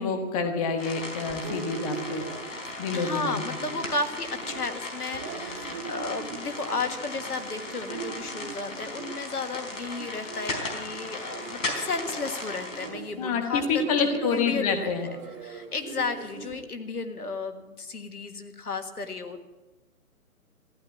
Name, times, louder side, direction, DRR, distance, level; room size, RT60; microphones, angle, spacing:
voice 1, 0.0-2.2 2.8-3.6 13.2-15.1, left 5 dB, 25° left, 6 dB, 1.5 m, -27 dB
sound 1, 0.8-12.9, left 2 dB, 55° left, 3.9 m, -37 dB
sound 2, 1.1-16.6, right 7 dB, 20° right, 1.4 m, -41 dB
voice 2, 2.9-15.2 15.4-19.4, left 4 dB, 80° left, 7 dB, 1.7 m, -33 dB
15.0 x 11.0 x 7.4 m, 1.1 s
figure-of-eight pair, 145°, 45 cm